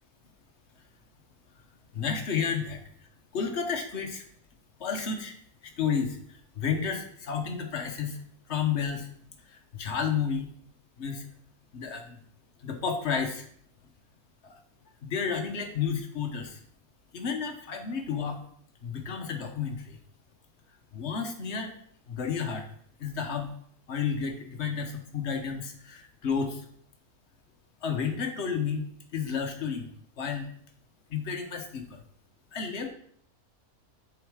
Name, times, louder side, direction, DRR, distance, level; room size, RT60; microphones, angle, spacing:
voice 1, 1.9-2.8 3.3-4.2 4.8-5.3 5.6-8.2 8.5-9.1 9.5-10.5 11.0-11.3 11.7-12.2 12.6-13.5 14.4-14.6 15.0-16.6 17.1-18.4 18.8-20.0 20.9-21.7 22.1-22.6 23.0-23.5 23.9-26.6 27.8-29.9 30.2-30.5 31.1-32.0 32.5-32.9, left 6 dB, 55° left, 4 dB, 1.2 m, -31 dB
7.0 x 4.0 x 4.8 m, 0.63 s
omnidirectional pair, 1.5 m